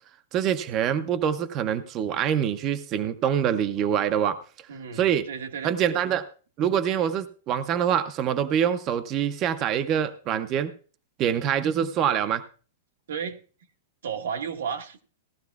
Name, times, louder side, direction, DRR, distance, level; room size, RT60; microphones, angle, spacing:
voice 1, 0.3-4.4 4.9-5.3 5.6-6.3 6.6-10.7 11.2-12.4, right 9 dB, 20° right, 11 dB, 0.4 m, -25 dB
voice 2, 4.7-5.7 13.1-13.4 14.0-15.0, right 7 dB, 85° right, 5 dB, 1.3 m, -33 dB
16.5 x 12.5 x 2.3 m, 0.39 s
supercardioid pair, 175°, 0 cm